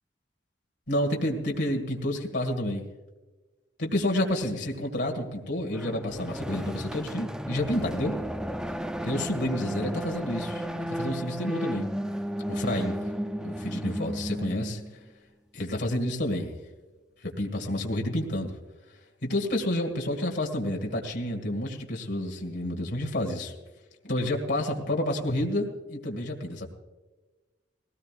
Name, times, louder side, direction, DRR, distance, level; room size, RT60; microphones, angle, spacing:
voice 1, 0.9-2.8 3.8-8.1 9.0-11.9 12.5-13.0 13.4-14.8 15.5-16.5 17.2-18.6 19.2-23.5 24.0-26.7, left 1 dB, 65° left, 1 dB, 2.1 m, -29 dB
sound 1, 5.7-14.9, equal, 5° right, 0.5 m, -33 dB
19.5 x 17.5 x 2.5 m, 1.2 s
head